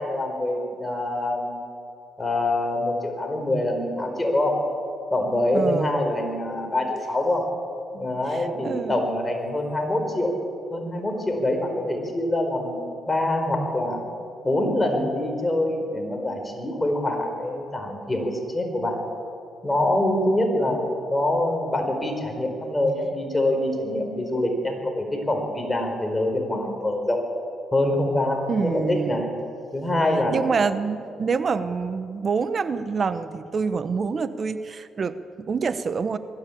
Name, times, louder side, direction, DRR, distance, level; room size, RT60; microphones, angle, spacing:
voice 1, 0.0-1.6 2.2-4.5 5.1-7.4 7.9-10.3 10.7-12.8 13.1-14.0 14.4-19.0 19.6-20.8 21.1-27.2 27.7-28.4 28.7-29.3 29.7-30.4, left 1 dB, 15° left, 3 dB, 4.7 m, -25 dB
voice 2, 5.5-6.1 8.3-9.0 28.5-29.2 30.3-36.2, right 5 dB, 40° right, 12 dB, 1.0 m, -26 dB
21.0 x 15.5 x 8.7 m, 2.5 s
cardioid pair, 90°, 0 cm